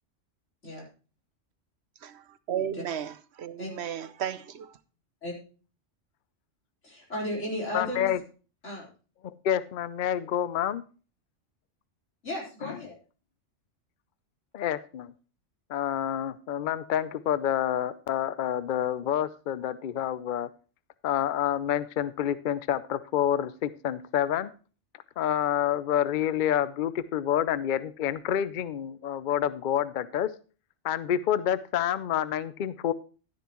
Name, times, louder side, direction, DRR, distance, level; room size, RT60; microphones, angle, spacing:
voice 1, 2.0-4.8, right 9 dB, 65° right, 0.9 m, -34 dB
voice 2, 6.8-8.1 8.6-8.9 12.2-13.0, left 1 dB, 75° left, 4.3 m, -34 dB
voice 3, 7.7-8.2 9.2-10.8 12.7-12.8 14.5-15.1 15.7-20.5 21.0-24.5 25.2-30.3 30.8-32.9, left 10 dB, 55° left, 0.6 m, -28 dB
12.0 x 10.5 x 3.0 m
omnidirectional pair, 1.3 m